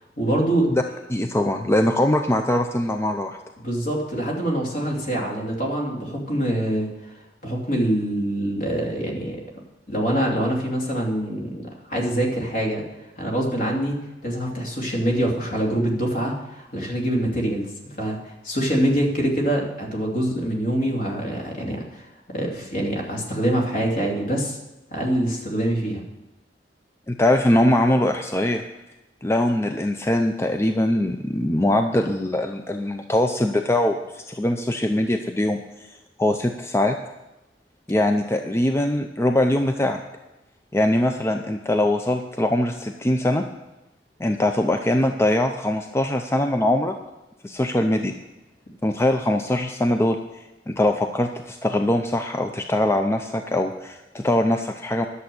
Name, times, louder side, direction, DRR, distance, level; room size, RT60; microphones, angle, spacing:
voice 1, 0.2-0.7 3.6-7.1 7.4-9.4 9.9-12.8 13.2-17.7 18.0-22.1 22.3-24.6 24.9-26.0, right 1 dB, 50° left, -1 dB, 2.8 m, -25 dB
voice 2, 1.1-3.4 27.1-28.6 29.2-35.9 36.2-37.0 37.9-40.0 40.7-43.4 44.2-47.0 47.4-48.1 48.8-55.1, left 1 dB, 15° left, 5 dB, 0.5 m, -22 dB
11.0 x 7.1 x 7.7 m, 0.99 s
head